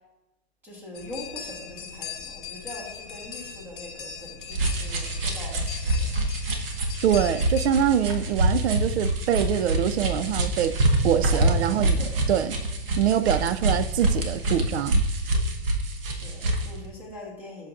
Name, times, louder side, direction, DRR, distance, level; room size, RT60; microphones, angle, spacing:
voice 1, 0.6-6.1 11.3-12.2 16.0-17.7, left 1 dB, 5° right, 1.3 m, -42 dB
sound 1, 0.9-7.7, left 7 dB, 55° left, 1.0 m, -40 dB
sound 2, 4.5-16.7, right 1 dB, 60° right, 1.2 m, -26 dB
voice 2, 7.0-10.8 11.0-12.6 13.0-15.0, right 10 dB, 90° right, 0.5 m, -24 dB
8.1 x 6.3 x 2.5 m
hypercardioid pair, 170°, 31 cm